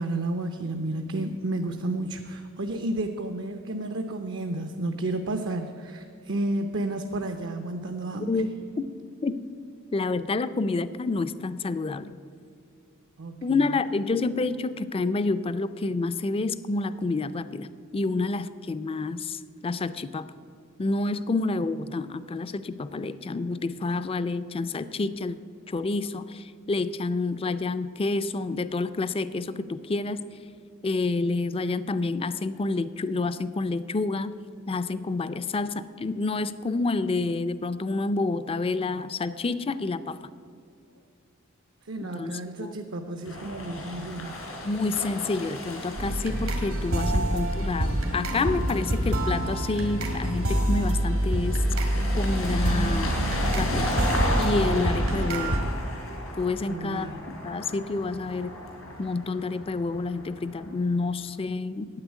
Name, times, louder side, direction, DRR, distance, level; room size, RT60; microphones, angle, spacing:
voice 1, 0.0-8.3 13.2-13.7 41.9-44.3 56.7-57.3, right 2 dB, 65° right, 6 dB, 0.7 m, -31 dB
voice 2, 9.9-12.1 13.4-20.3 20.8-25.4 25.7-30.2 30.8-34.4 34.7-40.2 42.0-42.8 44.6-51.6 52.2-53.1 53.5-53.9 54.4-55.6 56.4-57.1 57.4-58.5 59.0-61.9, left 3 dB, 25° left, 14 dB, 0.4 m, -28 dB
sound 1, 43.2-60.9, left 1 dB, 85° left, 3.5 m, -35 dB
sound 2, 46.0-55.6, right 1 dB, 80° right, 1.8 m, -26 dB
9.7 x 8.7 x 8.2 m, 2.5 s
head